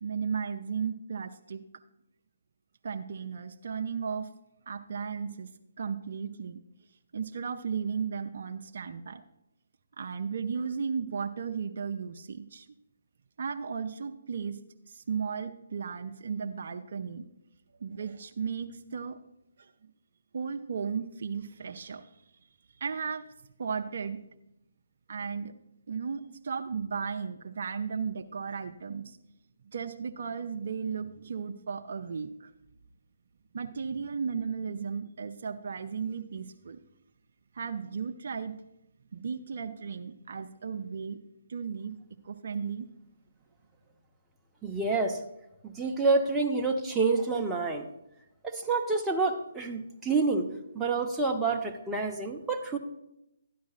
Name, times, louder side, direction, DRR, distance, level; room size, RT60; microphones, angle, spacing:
voice 1, 0.0-1.6 2.8-4.3 4.7-5.5 5.8-6.6 7.1-9.2 10.0-12.7 13.4-14.6 14.9-17.3 17.8-19.2 19.6-19.7 20.3-22.2 22.8-23.2 23.6-24.2 25.1-25.5 25.9-29.2 29.6-32.5 33.5-36.8 37.5-38.6 39.1-41.2 41.5-42.0 42.2-42.9, right 6 dB, 55° right, 6 dB, 0.5 m, -35 dB
voice 2, 44.6-45.2 45.6-47.9 48.4-50.5 50.7-52.8, right 3 dB, 10° right, 1 dB, 0.8 m, -28 dB
13.0 x 10.0 x 2.5 m, 0.85 s
figure-of-eight pair, 140°, 0 cm